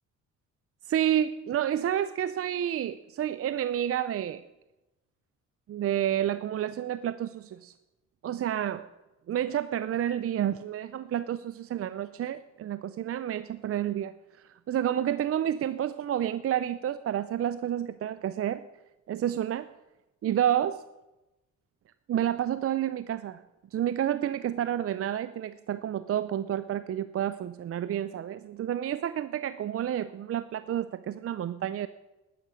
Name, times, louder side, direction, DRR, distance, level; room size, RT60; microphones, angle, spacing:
voice 1, 0.9-4.4 5.7-7.7 8.2-8.8 9.3-14.1 14.5-18.6 19.1-19.7 20.2-20.8 22.1-23.4 23.7-31.9, right 11 dB, 50° right, 14 dB, 0.5 m, -30 dB
12.0 x 9.8 x 6.3 m, 0.99 s
cardioid pair, 90°, 30 cm